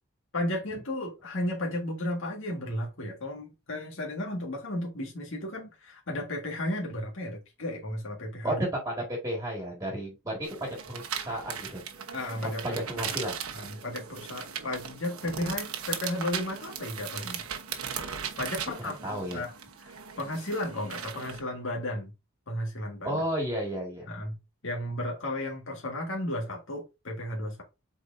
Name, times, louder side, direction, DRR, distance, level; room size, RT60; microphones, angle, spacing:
voice 1, 0.3-8.6 12.1-12.8 13.5-17.5 18.4-19.5 19.8-22.1 22.5-23.2 24.1-24.4 24.6-27.6, left 1 dB, 65° left, 1.8 m, -34 dB
voice 2, 8.4-11.8 12.6-13.4 19.0-19.4 23.0-24.1, right 1 dB, 15° right, 2.0 m, -32 dB
sound 1, 10.4-21.4, right 7 dB, 90° right, 1.2 m, -38 dB
7.9 x 4.4 x 2.7 m
head